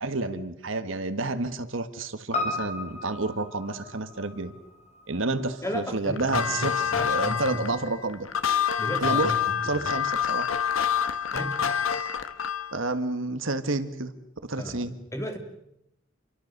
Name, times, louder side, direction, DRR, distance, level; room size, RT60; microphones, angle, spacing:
voice 1, 0.0-4.5 5.1-6.7 7.0-8.3 9.0-9.3 9.6-10.5 12.7-14.1 14.4-14.9, right 2 dB, 65° right, 10 dB, 1.6 m, -29 dB
Piano, 2.3-6.8 7.1-7.2, left 2 dB, 35° left, 4.9 m, -36 dB
voice 2, 5.6-7.6 8.8-9.4 9.7-9.9 11.3-11.6 14.6-14.8 15.1-15.4, left 1 dB, 15° left, 4 dB, 3.0 m, -34 dB
sound 1, 6.2-12.7, left 8 dB, 80° left, 1.4 m, -27 dB
28.0 x 23.5 x 6.7 m, 0.79 s
head